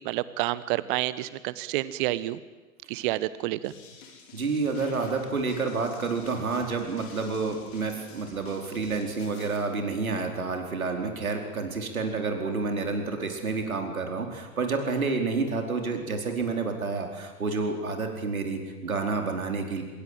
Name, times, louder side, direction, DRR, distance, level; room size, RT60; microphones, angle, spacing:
voice 1, 0.0-2.4 2.9-3.7, right 16 dB, 35° right, 17 dB, 1.3 m, -29 dB
sound 1, 3.6-9.6, left 5 dB, 45° left, 5.3 m, -49 dB
voice 2, 4.3-19.8, right 4 dB, 75° right, 3 dB, 4.7 m, -29 dB
26.0 x 23.0 x 7.7 m, 1.2 s
figure-of-eight pair, 105°, 42 cm